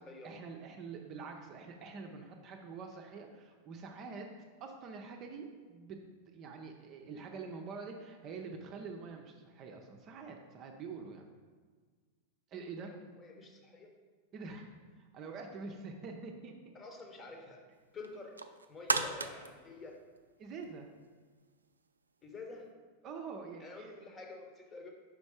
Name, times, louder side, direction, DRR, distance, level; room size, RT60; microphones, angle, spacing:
voice 1, 0.2-4.3 4.6-11.2 12.5-12.9 14.3-14.6 15.0-16.7 20.4-20.9 23.0-24.0, right 4 dB, 35° right, 3 dB, 0.6 m, -46 dB
voice 2, 12.9-13.9 16.7-17.6 17.9-18.4 18.7-20.0 22.2-22.7 23.6-24.9, left 3 dB, 20° left, 3 dB, 1.1 m, -48 dB
sound 1, 18.0-20.8 21.2-21.3, right 4 dB, 75° right, 0.3 m, -36 dB
5.2 x 5.1 x 4.9 m, 1.5 s
figure-of-eight pair, 90°, 0 cm